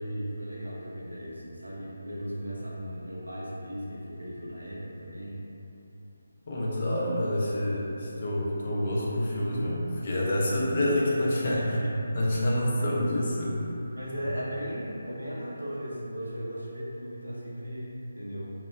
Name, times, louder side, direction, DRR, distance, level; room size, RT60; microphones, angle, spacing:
voice 1, 0.0-5.4 11.6-11.9 12.8-12.9 13.9-18.5, equal, 85° right, -6 dB, 0.6 m, -36 dB
voice 2, 6.5-11.6 12.1-13.7, left 1 dB, 45° left, -5 dB, 0.5 m, -27 dB
2.9 x 2.0 x 2.3 m, 2.8 s
figure-of-eight pair, 155°, 0 cm